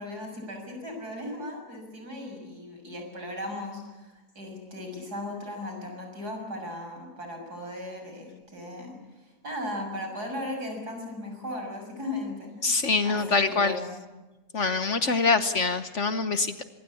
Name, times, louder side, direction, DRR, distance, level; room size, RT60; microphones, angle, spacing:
voice 1, 0.0-8.9 9.2-12.7 13.0-13.9, left 1 dB, 70° right, 3 dB, 7.3 m, -37 dB
voice 2, 12.6-13.8 14.5-16.6, left 4 dB, 50° left, 11 dB, 1.3 m, -25 dB
25.5 x 22.5 x 8.5 m, 1.1 s
omnidirectional pair, 1.8 m